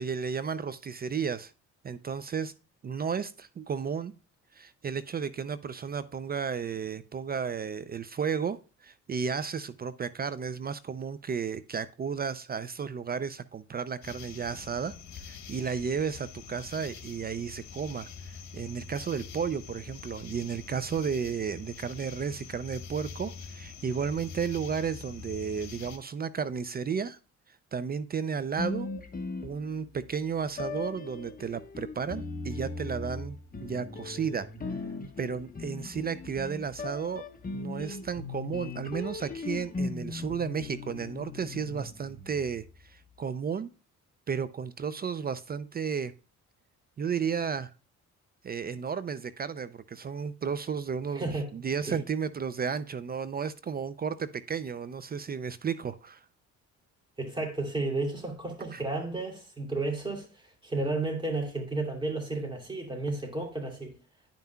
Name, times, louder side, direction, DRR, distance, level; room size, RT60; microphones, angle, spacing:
voice 1, 0.0-1.5 1.8-2.5 2.8-4.1 4.5-14.9 15.2-27.2 27.7-28.9 29.4-34.5 35.2-37.2 37.5-43.7 44.3-46.1 47.0-47.7 48.4-56.2 58.7-58.8, right 6 dB, 30° right, 0.4 m, -33 dB
sound 1, 14.0-26.0, left 6 dB, 65° left, 1.3 m, -45 dB
sound 2, 28.6-30.0 30.6-42.8, left 3 dB, 30° left, 1.1 m, -38 dB
voice 2, 51.1-51.5 51.8-52.0 57.2-63.9, right 2 dB, 15° right, 2.7 m, -32 dB
10.5 x 5.6 x 2.3 m
cardioid pair, 90°, 30 cm